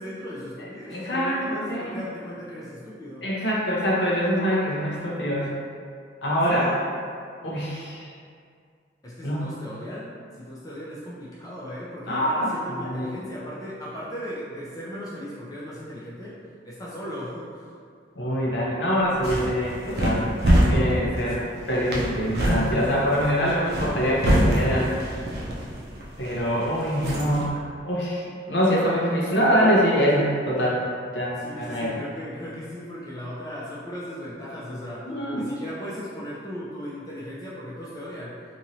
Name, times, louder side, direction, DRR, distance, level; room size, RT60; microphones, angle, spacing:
voice 1, 0.0-3.3 6.5-6.8 9.0-16.4 16.6-17.7 31.4-38.4, equal, 20° left, -8 dB, 0.4 m, -37 dB
voice 2, 0.9-2.0 3.2-5.5 6.2-6.7 7.4-8.1 9.2-9.7 12.1-13.1 18.2-21.4 21.7-24.9 26.2-27.5 27.8-30.8 31.1-31.9 35.1-35.4, equal, 70° left, -5 dB, 0.7 m, -24 dB
sound 1, 19.0-27.5, equal, 60° right, 0.5 m, -25 dB
2.9 x 2.7 x 2.6 m, 2.2 s
head